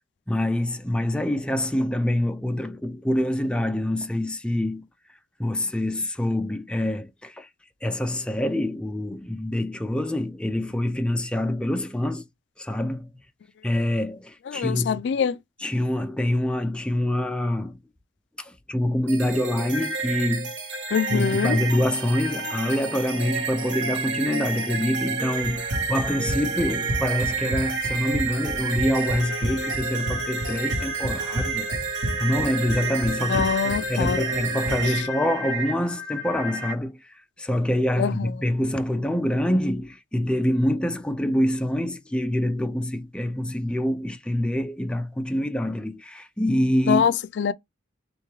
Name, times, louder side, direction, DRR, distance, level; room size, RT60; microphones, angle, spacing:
voice 1, 0.3-4.9 5.4-7.5 7.8-12.2 12.6-13.1 13.6-15.0 15.6-17.8 18.4-20.5 21.1-31.7 32.2-47.0, left 1 dB, 5° left, 0.4 m, -26 dB
voice 2, 14.5-15.4 20.9-21.6 33.3-34.2 38.0-38.3 46.9-47.5, left 7 dB, 65° left, 0.3 m, -24 dB
sound 1, 19.1-36.7, right 4 dB, 75° right, 1.3 m, -30 dB
Run, 25.4-34.9, equal, 40° right, 1.9 m, -31 dB
3.7 x 3.5 x 3.0 m
head